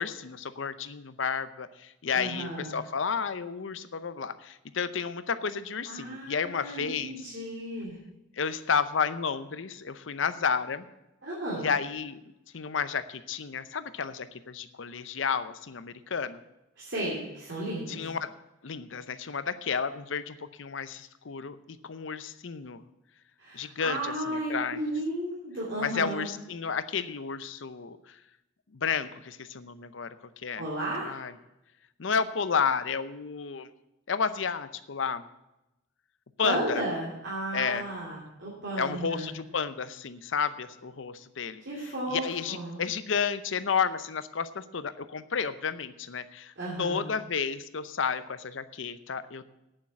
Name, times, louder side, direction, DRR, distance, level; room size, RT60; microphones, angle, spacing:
voice 1, 0.0-7.2 8.4-10.8 11.6-12.2 12.5-16.4 17.9-18.3 18.6-22.8 23.5-24.8 25.8-28.2 28.7-30.7 31.0-31.3 32.0-33.7 34.1-35.2 36.4-36.8 37.5-37.9 38.8-41.6 42.1-49.4, left 6 dB, 75° left, 13 dB, 0.7 m, -31 dB
voice 2, 2.1-2.8 5.9-8.0 11.2-11.7 16.8-18.0 23.4-26.3 30.6-31.1 36.4-39.3 41.6-42.8 46.6-47.1, right 1 dB, 65° right, -6 dB, 2.8 m, -34 dB
9.0 x 7.4 x 8.5 m, 0.91 s
head